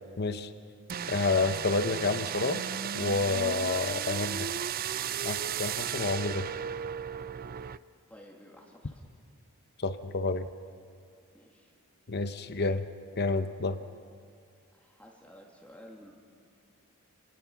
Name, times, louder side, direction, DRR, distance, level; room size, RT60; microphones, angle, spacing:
voice 1, 0.2-0.5 1.1-2.6 2.9-4.5 5.2-6.4 9.8-10.5 12.1-12.9 13.2-13.8, left 3 dB, 50° left, 9 dB, 0.9 m, -29 dB
sound 1, 0.9-7.8, right 9 dB, 45° right, 0.4 m, -34 dB
voice 2, 8.1-9.0 11.3-11.7 14.7-16.1, equal, 5° left, -1 dB, 2.4 m, -52 dB
30.0 x 18.0 x 6.1 m, 2.3 s
head